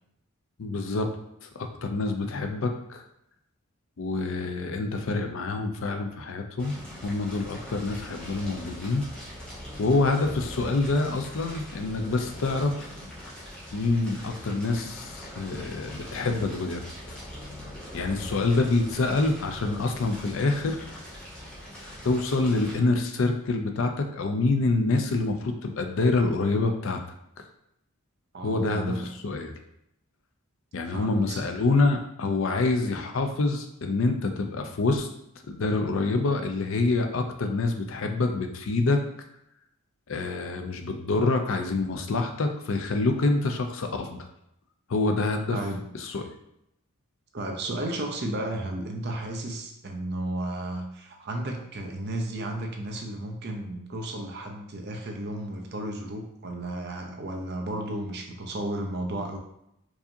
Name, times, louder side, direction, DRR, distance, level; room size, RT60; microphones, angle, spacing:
voice 1, 0.6-1.1 1.4-3.0 4.0-6.8 7.0-9.0 9.8-12.9 13.7-16.8 17.1-17.2 17.9-20.9 22.0-27.0 27.4-27.5 28.4-29.5 30.7-35.1 35.5-39.0 40.1-44.3 44.9-45.6 46.0-46.2, left 3 dB, 65° left, 5 dB, 0.5 m, -26 dB
Fire, 6.6-22.7, left 1 dB, 5° left, 0.8 m, -42 dB
voice 2, 28.3-29.1 30.8-31.4 45.5-45.9 47.3-59.4, right 1 dB, 45° right, 2 dB, 0.6 m, -33 dB
4.7 x 2.7 x 2.6 m, 0.80 s
head